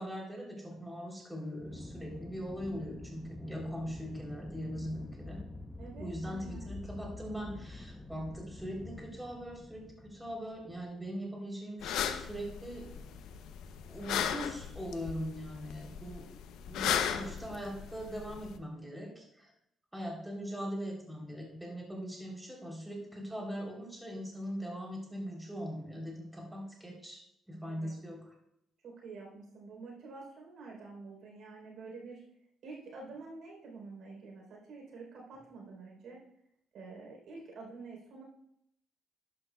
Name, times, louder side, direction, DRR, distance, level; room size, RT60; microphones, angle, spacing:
voice 1, 0.0-5.4 6.0-13.0 13.9-16.3 16.6-19.5 19.9-28.3, equal, 5° right, -1 dB, 3.7 m, -41 dB
Aircraft, 1.6-11.1, left 2 dB, 15° left, 0.9 m, -47 dB
voice 2, 5.8-6.7 27.6-27.9 28.8-32.2 32.6-36.2 36.7-38.2, right 4 dB, 75° right, -1 dB, 4.0 m, -48 dB
sound 1, 11.8-18.6, left 9 dB, 85° left, 0.8 m, -36 dB
11.5 x 11.0 x 2.4 m, 0.75 s
cardioid pair, 90°, 0 cm